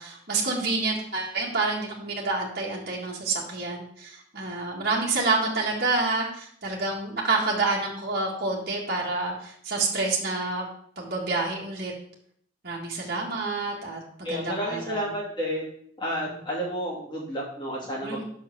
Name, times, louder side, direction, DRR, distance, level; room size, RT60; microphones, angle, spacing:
voice 1, 0.0-10.7 11.0-11.9 12.6-15.1 18.0-18.2, right 3 dB, 50° right, -4 dB, 1.6 m, -28 dB
voice 2, 14.2-15.7 16.0-18.2, equal, 25° left, -5 dB, 2.5 m, -31 dB
6.0 x 4.7 x 6.6 m, 0.65 s
head